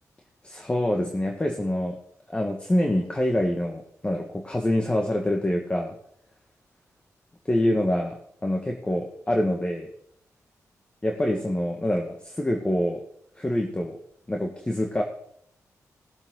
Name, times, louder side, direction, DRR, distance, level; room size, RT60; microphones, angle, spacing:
voice 1, 0.4-2.0 2.3-5.9 7.4-9.9 11.0-13.0 13.4-14.0 14.3-15.0, left 1 dB, 20° left, 2 dB, 1.7 m, -26 dB
19.5 x 7.5 x 3.9 m, 0.68 s
cardioid pair, 70°, 6 cm